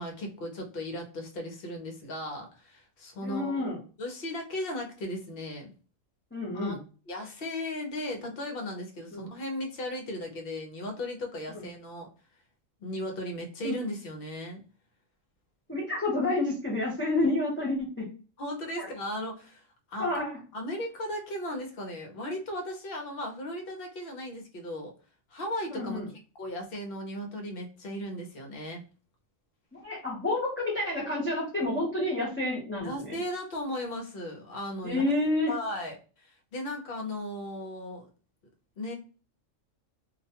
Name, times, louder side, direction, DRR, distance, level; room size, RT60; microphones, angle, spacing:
voice 1, 0.0-5.7 6.5-6.8 7.1-12.1 12.8-14.6 17.2-17.3 18.4-20.1 20.5-24.9 25.3-26.0 26.3-28.8 32.8-35.0 35.5-38.1 38.8-38.9, left 1 dB, 55° left, 2 dB, 0.8 m, -36 dB
voice 2, 3.2-3.8 6.3-6.8 9.1-9.3 11.5-11.6 13.6-13.7 15.7-18.1 18.8-18.9 20.0-20.4 25.7-26.1 29.8-33.1 34.8-35.5, left 2 dB, 15° left, -6 dB, 0.6 m, -29 dB
2.4 x 2.2 x 2.8 m, 0.36 s
omnidirectional pair, 1.4 m